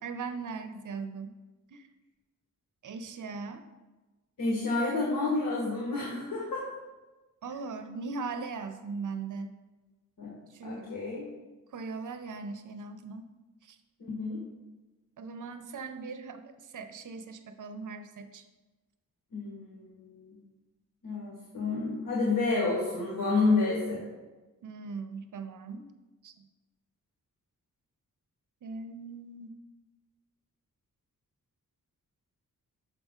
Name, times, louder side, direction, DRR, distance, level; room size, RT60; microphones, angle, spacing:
voice 1, 0.0-1.4 1.7-1.9 2.8-3.6 7.4-9.6 10.5-10.9 11.7-13.3 13.6-13.8 15.2-18.4 24.6-25.9 26.2-26.5 28.6-29.6, right 4 dB, 70° right, 9 dB, 0.6 m, -39 dB
voice 2, 4.4-6.7 10.2-10.3 10.6-11.3 14.0-14.4 19.3-20.4 21.0-24.0, left 3 dB, 90° left, -4 dB, 1.4 m, -29 dB
6.7 x 5.2 x 3.6 m, 1.2 s
wide cardioid pair, 115°, 32 cm